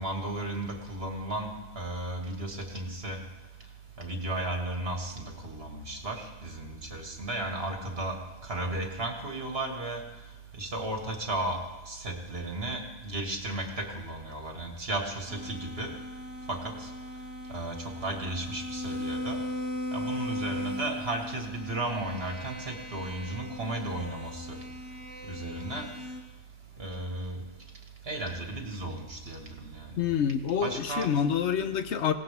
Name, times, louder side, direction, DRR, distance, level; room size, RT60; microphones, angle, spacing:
voice 1, 0.0-3.2 4.0-10.0 10.6-11.6 11.9-15.9 16.5-16.9 17.5-17.8 18.0-19.4 19.9-24.6 25.3-25.9 26.8-27.4 28.1-30.0 30.6-31.1, right 2 dB, 65° right, 2 dB, 2.3 m, -34 dB
sound 1, 15.3-26.2, left 1 dB, 15° right, 1.4 m, -38 dB
voice 2, 30.0-32.1, left 8 dB, 85° left, 9 dB, 1.2 m, -27 dB
19.5 x 17.5 x 3.6 m, 1.1 s
omnidirectional pair, 1.1 m